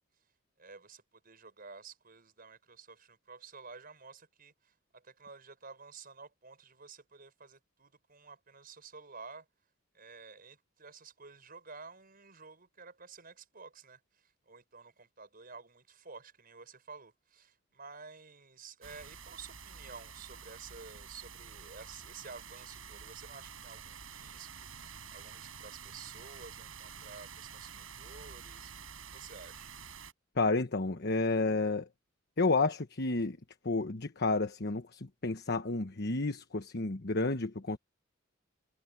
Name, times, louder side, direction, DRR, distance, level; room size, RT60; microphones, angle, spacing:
voice 1, 0.6-9.5 9.9-28.7 29.1-29.7, right 4 dB, 45° right, 6.0 m, -52 dB
sound 1, 18.8-30.1, right 6 dB, 90° right, 6.4 m, -49 dB
voice 2, 30.4-31.9 32.4-33.4 33.6-37.8, left 3 dB, 55° left, 1.2 m, -31 dB
head